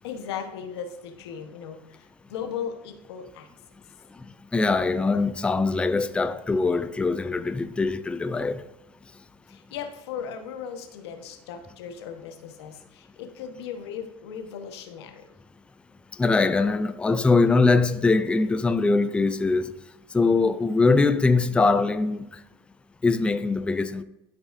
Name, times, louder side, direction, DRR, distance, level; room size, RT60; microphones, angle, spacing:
voice 1, 0.0-3.5 9.5-15.3, left 7 dB, 85° left, 1.2 m, -37 dB
voice 2, 4.5-8.6 16.2-19.7 20.1-22.3 23.0-24.0, left 3 dB, 10° left, 0.3 m, -22 dB
12.5 x 4.8 x 2.6 m
supercardioid pair, 120°, 13 cm